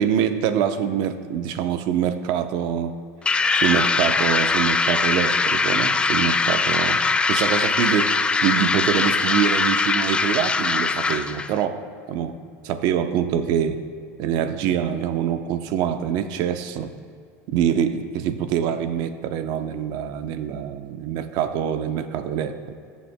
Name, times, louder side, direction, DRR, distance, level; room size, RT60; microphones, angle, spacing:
voice 1, 0.0-2.9 3.5-7.0 7.3-12.4 12.6-13.8 14.2-16.9 17.5-22.7, right 9 dB, 55° right, 9 dB, 0.7 m, -25 dB
sound 1, 3.3-11.5, left 4 dB, 15° left, 0.3 m, -21 dB
21.0 x 7.3 x 2.2 m, 2.2 s
supercardioid pair, 135°, 8 cm